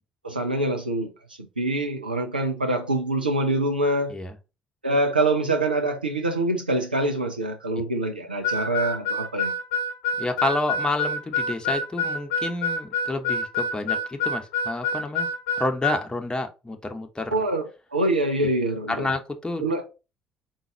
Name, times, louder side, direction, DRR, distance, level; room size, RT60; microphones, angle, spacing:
voice 1, 0.2-1.1 1.6-4.1 4.8-9.5 17.3-17.7 17.9-19.1 19.6-19.8, right 2 dB, 90° right, 0.4 m, -25 dB
Harmonica, 8.4-16.0, left 2 dB, 75° left, 0.8 m, -27 dB
voice 2, 10.2-17.5 18.9-19.7, left 2 dB, 15° left, 0.9 m, -29 dB
3.9 x 2.4 x 4.4 m
figure-of-eight pair, 50°, 5 cm